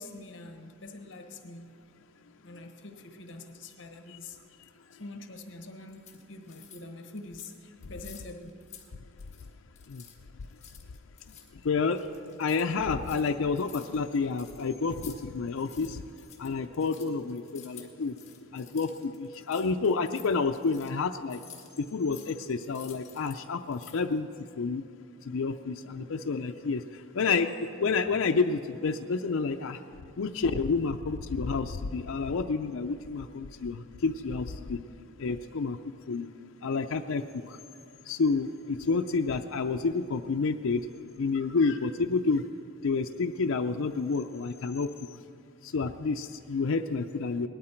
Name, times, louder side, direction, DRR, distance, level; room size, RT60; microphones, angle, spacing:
voice 1, 0.0-1.7 2.4-4.4 5.0-8.5 41.3-41.8, left 2 dB, 60° left, 6 dB, 1.1 m, -45 dB
sound 1, 5.9-6.8 7.2-7.6 7.8-8.9 9.1-9.5 9.7-15.2 15.5-23.4 23.6-24.2, left 9 dB, 30° left, 1.5 m, -52 dB
voice 2, 11.6-12.0 12.4-16.0 16.4-18.1 18.5-21.4 21.8-24.3 24.6-24.8 25.3-26.8 27.1-27.5 27.8-29.8 30.2-34.8 35.2-35.8 36.1-36.3 36.6-37.6 38.1-40.8 41.2-42.4 42.8-44.9 45.7-47.5, left 4 dB, 75° left, 4 dB, 0.5 m, -29 dB
19.0 x 12.5 x 4.4 m, 2.5 s
head